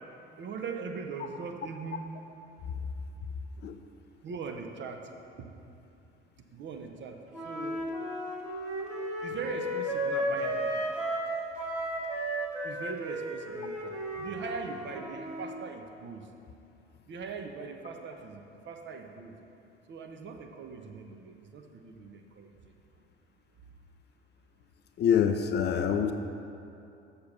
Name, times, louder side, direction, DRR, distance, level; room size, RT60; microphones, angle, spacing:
voice 1, 0.4-2.1 4.2-5.1 5.4-5.5 6.5-7.8 9.2-10.9 12.6-16.3 17.1-19.3 19.9-22.5, right 5 dB, 40° right, 4 dB, 0.8 m, -41 dB
Wind instrument woodwind instrument, 7.3-11.3 11.6-15.5, right 1 dB, 5° right, 2.0 m, -34 dB
voice 2, 25.0-26.1, left 8 dB, 35° left, 7 dB, 0.5 m, -25 dB
7.0 x 6.7 x 5.5 m, 2.7 s
figure-of-eight pair, 55°, 30 cm